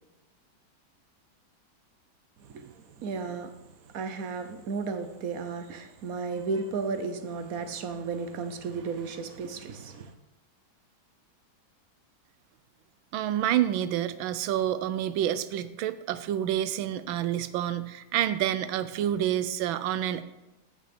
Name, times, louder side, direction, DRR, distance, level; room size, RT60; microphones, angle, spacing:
voice 1, 2.4-10.1, right 4 dB, 60° right, 1.0 m, -34 dB
voice 2, 13.1-20.2, right 11 dB, 85° right, 1.4 m, -28 dB
14.5 x 5.9 x 4.3 m
omnidirectional pair, 2.1 m